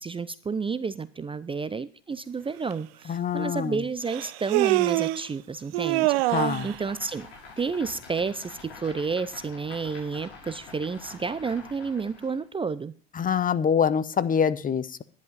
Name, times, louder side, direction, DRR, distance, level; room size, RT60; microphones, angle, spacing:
voice 1, 0.0-7.3 7.6-12.9, right 5 dB, 15° right, 16 dB, 0.6 m, -31 dB
Human voice, 2.7-2.8 4.1-5.3 5.7-6.7, right 19 dB, 65° right, 0.6 m, -24 dB
voice 2, 3.1-3.8 6.3-6.7 13.2-15.0, left 7 dB, 25° left, 15 dB, 0.8 m, -25 dB
sound 1, 6.3-12.4, left 4 dB, 80° left, 6.6 m, -46 dB
10.5 x 10.5 x 5.3 m, 0.41 s
hypercardioid pair, 75°, 32 cm